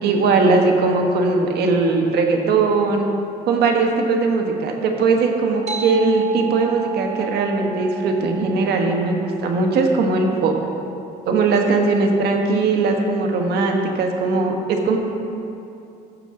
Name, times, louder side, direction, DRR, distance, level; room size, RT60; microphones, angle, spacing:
voice 1, 0.0-3.1 3.5-10.6 11.2-15.0, right 3 dB, 70° right, 2 dB, 1.3 m, -19 dB
sound 1, 5.7-10.6, right 7 dB, 45° right, 1.2 m, -34 dB
15.0 x 6.9 x 3.8 m, 2.7 s
cardioid pair, 110°, 17 cm